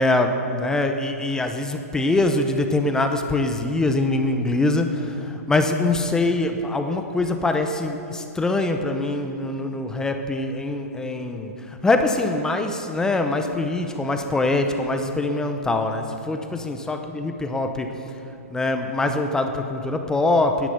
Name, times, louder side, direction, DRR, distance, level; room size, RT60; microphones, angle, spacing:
voice 1, 0.0-17.9 18.5-20.7, left 2 dB, 5° left, 6 dB, 0.6 m, -23 dB
10.0 x 9.1 x 7.8 m, 2.7 s
hypercardioid pair, 140°, 8 cm